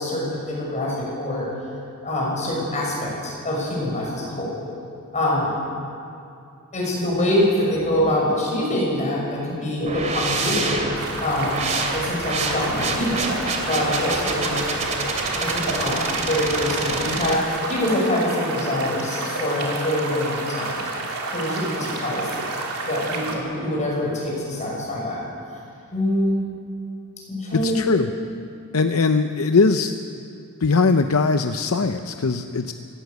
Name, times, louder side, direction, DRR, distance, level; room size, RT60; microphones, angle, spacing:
voice 1, 0.0-1.5 2.0-4.5 5.1-5.5 6.7-11.6 11.9-14.6 15.4-20.9 21.3-22.3 22.9-25.2 25.9-26.4 27.3-27.8, left 1 dB, 35° left, -3 dB, 6.5 m, -25 dB
sound 1, 9.9-17.4, right 3 dB, 35° right, 2.4 m, -27 dB
sound 2, 10.9-23.4, right 3 dB, 80° right, 3.0 m, -30 dB
voice 2, 27.5-28.1 28.7-30.0 30.6-32.7, left 4 dB, 70° left, 7 dB, 0.7 m, -20 dB
19.0 x 17.0 x 8.2 m, 2.6 s
head